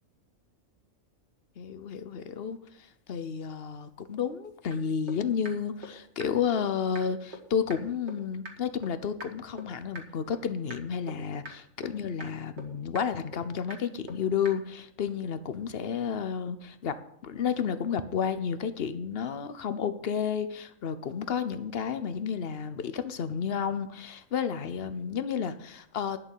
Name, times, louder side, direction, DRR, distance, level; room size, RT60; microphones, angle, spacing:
voice 1, 1.6-17.0 17.2-26.2, left 7 dB, 50° left, 11 dB, 1.0 m, -31 dB
sound 1, 4.7-4.8 5.1-5.2 5.4-5.5 5.8-5.9 6.2-6.3 6.6-6.7 6.9-7.0 7.3-7.4 7.7-7.8 8.1-8.2 8.4-8.5 8.8-8.9 9.2-9.3 9.6-9.7 9.9-10.0 10.3-10.4 10.7-10.8 11.1-11.2 11.4-11.5 11.8-11.9 12.2-12.3 12.6-12.7 12.9-13.0 13.3-13.4 13.7-13.8 14.1-14.2 14.4-14.5, right 1 dB, 55° right, 1.9 m, -40 dB
11.5 x 6.7 x 7.2 m, 0.75 s
omnidirectional pair, 1.4 m